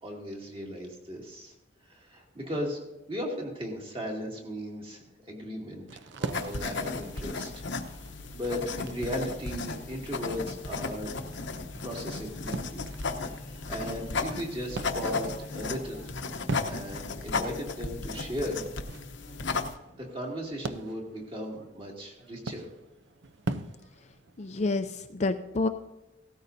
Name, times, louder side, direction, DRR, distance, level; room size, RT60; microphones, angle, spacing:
voice 1, 0.0-1.5 1.8-2.8 3.1-7.6 8.3-11.2 11.8-12.8 13.2-16.1 16.6-18.6 19.8-22.7, equal, 25° right, -1 dB, 2.3 m, -37 dB
sound 1, 5.9-24.8, right 2 dB, 60° right, 0.6 m, -42 dB
sound 2, 6.3-19.8, left 4 dB, 65° left, 0.8 m, -35 dB
voice 2, 24.4-25.7, left 3 dB, 35° left, 7 dB, 0.5 m, -28 dB
17.0 x 13.5 x 2.7 m, 0.99 s
head